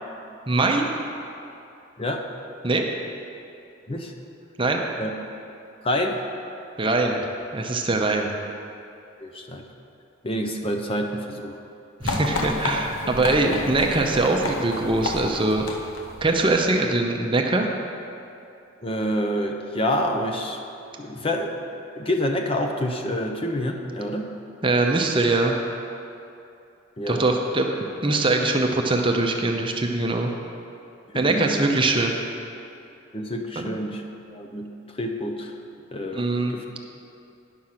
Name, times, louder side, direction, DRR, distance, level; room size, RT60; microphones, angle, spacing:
voice 1, 0.5-0.9 2.6-2.8 4.6-4.8 6.8-7.2 7.5-8.3 12.0-15.6 16.2-17.7 24.6-25.6 27.1-27.7 28.0-30.3 31.1-32.2 33.6-33.7 36.1-36.6, right 2 dB, 25° right, 2 dB, 0.7 m, -22 dB
voice 2, 5.8-6.3 9.2-9.6 10.2-11.6 18.8-20.6 21.0-21.6 22.0-24.3 27.0-27.3 31.1-31.6 33.1-34.0 34.3-34.7 35.0-35.5 35.9-36.6, equal, 25° left, 3 dB, 0.6 m, -27 dB
sound 1, 12.0-16.7, left 2 dB, 80° left, 0.9 m, -31 dB
10.5 x 6.3 x 5.7 m, 2.7 s
head